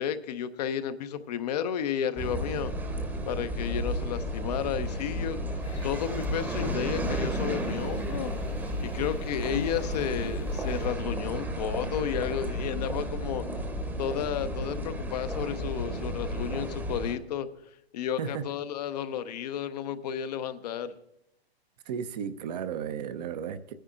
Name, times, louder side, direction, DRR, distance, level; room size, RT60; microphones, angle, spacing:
voice 1, 0.0-2.7 3.3-5.4 5.8-8.3 8.8-13.4 14.0-17.5 17.9-20.9, left 9 dB, 40° left, 0.7 m, -32 dB
sound 1, 2.2-17.2, equal, 5° right, 0.9 m, -32 dB
sound 2, 5.6-10.9, left 3 dB, 85° left, 2.4 m, -47 dB
voice 2, 21.9-23.7, right 7 dB, 40° right, 0.7 m, -34 dB
20.5 x 10.0 x 2.5 m
figure-of-eight pair, 115°, 32 cm